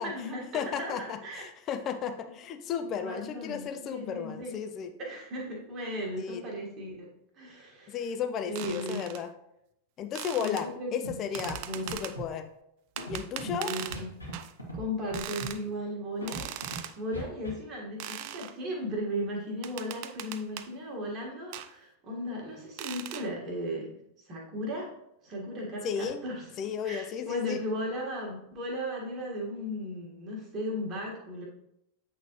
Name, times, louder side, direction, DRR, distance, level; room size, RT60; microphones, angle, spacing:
voice 1, 0.0-1.4 2.8-4.5 5.0-6.9 7.4-8.1 8.5-9.0 10.4-11.2 11.7-12.1 13.4-14.1 14.7-24.0 24.3-24.9 25.2-26.4 26.8-31.5, equal, 30° right, -2 dB, 1.7 m, -36 dB
voice 2, 0.5-4.9 6.2-6.4 7.9-9.3 10.0-12.5 13.1-13.7 25.8-26.2 26.6-27.6, left 7 dB, 30° left, 8 dB, 0.5 m, -34 dB
sound 1, 8.6-9.2 10.1-10.7 11.3-12.2 13.0-14.0 14.3-14.5 15.1-15.6 16.3-17.0 18.0-18.5 19.6-20.7 21.5-21.7 22.8-23.3, right 11 dB, 45° right, 0.3 m, -39 dB
Scratching (performance technique), 11.0-11.1 11.4-11.6 11.8-12.3 13.0-13.5 13.9-14.3 14.6-14.8 15.1-15.5 16.2-16.8 17.1-17.5, right 1 dB, 85° left, 1.8 m, -39 dB
8.2 x 3.7 x 3.1 m, 0.80 s
figure-of-eight pair, 90°, 0 cm